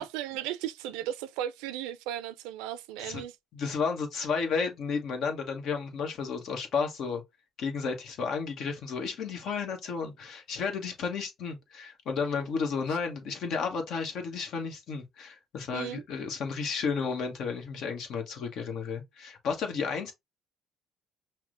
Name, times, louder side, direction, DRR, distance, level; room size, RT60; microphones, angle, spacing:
voice 1, 0.0-3.4 15.7-16.0, right 11 dB, 80° right, 0.3 m, -36 dB
voice 2, 3.5-7.2 7.6-20.1, left 5 dB, 65° left, 1.0 m, -32 dB
5.8 x 2.1 x 2.4 m
hypercardioid pair, 60°, 0 cm